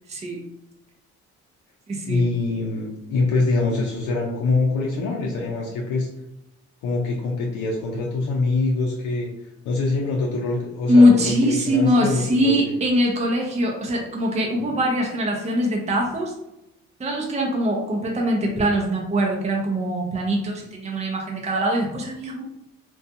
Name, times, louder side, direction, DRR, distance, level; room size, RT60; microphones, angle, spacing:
voice 1, 0.1-0.4 1.9-2.3 10.9-16.3 17.0-22.4, equal, 20° right, 0 dB, 0.6 m, -22 dB
voice 2, 2.0-6.1 6.8-9.3 9.6-12.7, left 3 dB, 85° left, -2 dB, 0.5 m, -24 dB
2.5 x 2.2 x 2.7 m, 0.87 s
cardioid pair, 90°, 30 cm